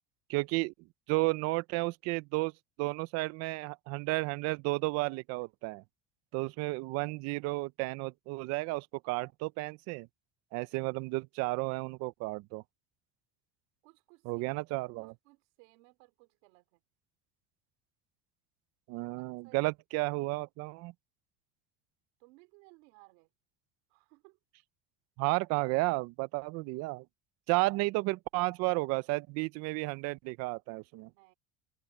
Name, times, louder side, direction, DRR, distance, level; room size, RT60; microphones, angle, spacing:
voice 1, 0.3-0.7 1.1-2.5 2.8-5.8 6.3-10.1 10.5-12.6 14.3-15.1 18.9-20.9 25.2-27.0 27.5-31.1, right 24 dB, 50° right, 0.4 m, -32 dB
voice 2, 13.8-16.8 19.4-19.7 22.2-23.3 23.9-24.4 31.1-31.3, right 27 dB, 90° right, 3.7 m, -61 dB
open air
cardioid pair, 170°, 33 cm